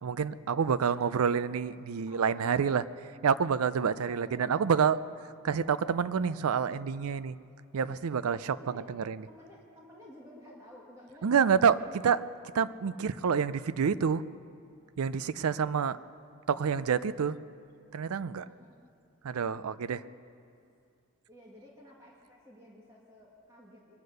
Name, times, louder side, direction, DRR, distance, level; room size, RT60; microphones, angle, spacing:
voice 1, 0.0-2.8 3.2-5.0 5.4-7.4 7.7-9.2 11.2-11.8 12.0-12.3 12.5-14.2 15.0-16.0 16.5-17.4 17.9-18.5 19.2-20.0, right 6 dB, 75° right, 16 dB, 0.4 m, -28 dB
voice 2, 0.7-1.2 2.1-2.8 3.9-4.5 8.3-8.9 9.3-11.9 12.9-13.0 18.5-18.8 19.9-20.1 20.4-20.6 21.3-24.0, left 1 dB, 15° right, -5 dB, 1.9 m, -53 dB
22.5 x 9.5 x 6.6 m, 2.4 s
head